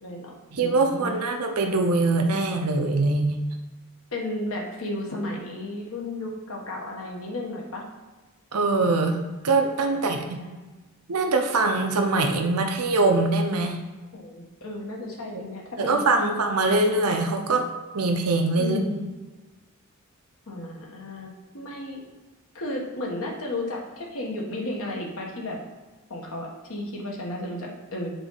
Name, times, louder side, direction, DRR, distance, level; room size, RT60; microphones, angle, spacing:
voice 1, 0.0-1.1 4.1-7.8 9.9-10.0 10.3-10.7 14.1-16.4 18.6-19.1 20.5-22.0 22.5-25.6 26.1-28.1, left 1 dB, 65° left, -1 dB, 1.4 m, -34 dB
voice 2, 0.5-3.4 8.5-9.2 9.4-10.4 11.1-13.8 15.8-17.7 17.9-18.8, right 3 dB, 85° right, 4 dB, 0.8 m, -23 dB
7.9 x 3.9 x 4.0 m, 1.2 s
head